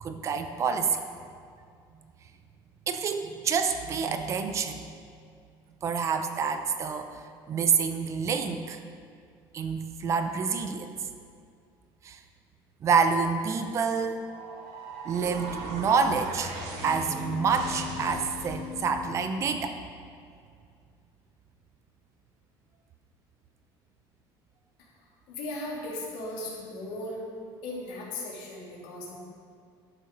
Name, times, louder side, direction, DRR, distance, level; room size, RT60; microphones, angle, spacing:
voice 1, 0.0-1.0 2.9-4.8 5.8-8.8 9.5-10.9 12.0-12.2 12.8-14.3 15.0-16.6 16.8-19.7, right 5 dB, 30° right, 7 dB, 0.6 m, -27 dB
sound 1, 14.2-18.8, right 3 dB, 90° right, 1.8 m, -39 dB
sound 2, 16.7-20.4, left 6 dB, 25° left, 1.5 m, -41 dB
voice 2, 25.3-27.2 27.6-29.2, left 1 dB, 85° left, -4 dB, 3.0 m, -37 dB
11.5 x 6.8 x 5.3 m, 2.3 s
cardioid pair, 165°, 9 cm